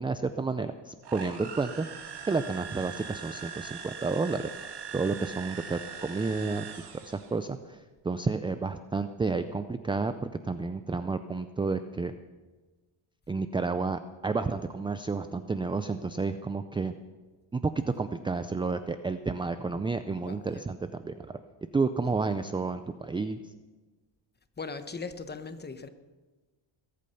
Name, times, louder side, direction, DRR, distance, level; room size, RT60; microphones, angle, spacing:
voice 1, 0.0-1.9 2.3-4.5 4.9-12.1 13.3-16.9 17.5-21.4 21.7-23.5, right 4 dB, 10° right, 10 dB, 0.3 m, -31 dB
sound 1, 1.0-7.4, right 6 dB, 50° right, 2.1 m, -41 dB
voice 2, 20.2-20.7 24.6-25.9, left 4 dB, 20° left, 10 dB, 1.0 m, -39 dB
21.0 x 8.6 x 5.6 m, 1.3 s
cardioid pair, 105°, 49 cm